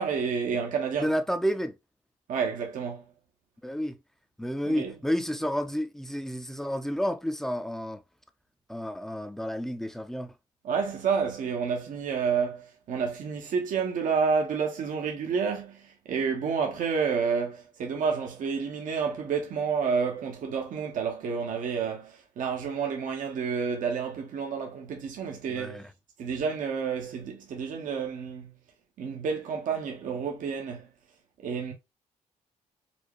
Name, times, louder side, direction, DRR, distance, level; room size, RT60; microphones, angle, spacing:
voice 1, 0.0-1.1 2.3-3.1 4.6-4.9 10.6-25.8 26.2-28.6 29.0-30.9 31.4-31.7, right 6 dB, 70° right, 1.0 m, -29 dB
voice 2, 1.0-1.7 3.6-4.0 4.4-8.0 8.7-10.3 25.5-25.8, equal, 5° left, 0.6 m, -30 dB
4.4 x 2.2 x 2.9 m
cardioid pair, 80°, 14 cm